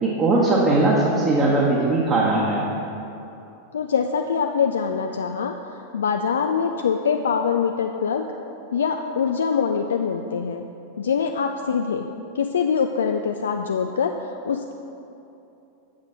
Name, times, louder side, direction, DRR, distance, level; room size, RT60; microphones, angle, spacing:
voice 1, 0.0-2.7, right 2 dB, 25° right, -5 dB, 1.2 m, -19 dB
voice 2, 3.7-5.5 5.9-8.3 8.7-10.7 11.0-12.1 12.4-14.2 14.5-14.7, left 6 dB, 65° left, 5 dB, 0.3 m, -23 dB
7.2 x 6.4 x 5.5 m, 2.8 s
figure-of-eight pair, 90°, 0 cm